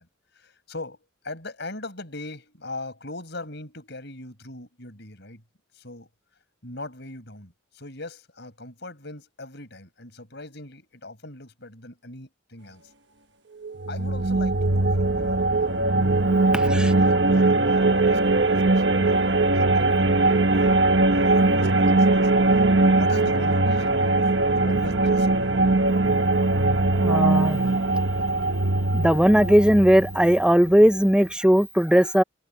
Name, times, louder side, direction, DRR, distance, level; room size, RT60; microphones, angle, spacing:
voice 1, 0.4-1.0 1.2-5.4 5.7-6.1 6.6-12.8 13.9-16.0 16.4-24.3 24.6-25.5, left 2 dB, 60° left, 7.1 m, -40 dB
sound 1, 13.6-31.0, right 2 dB, 60° right, 1.3 m, -21 dB
voice 2, 16.5-16.9 27.0-27.6 28.9-32.2, equal, 5° right, 0.7 m, -18 dB
head